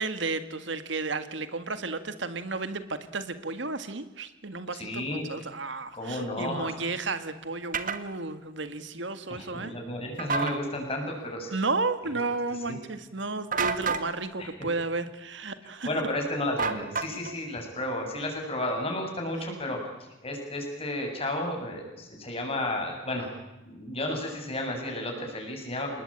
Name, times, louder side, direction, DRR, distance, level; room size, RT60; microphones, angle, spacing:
voice 1, 0.0-9.7 11.5-15.9 19.5-19.6, right 3 dB, 65° right, 11 dB, 1.8 m, -33 dB
voice 2, 4.7-5.3 5.9-6.7 9.3-11.5 12.7-12.8 14.4-14.5 15.8-19.8 20.2-23.3 23.6-26.0, left 1 dB, 30° left, 2 dB, 7.5 m, -32 dB
sound 1, 7.7-8.0 10.2-10.6 13.5-14.1 16.6-17.4, right 5 dB, 45° right, 1.8 m, -29 dB
27.5 x 20.5 x 8.9 m, 1.0 s
head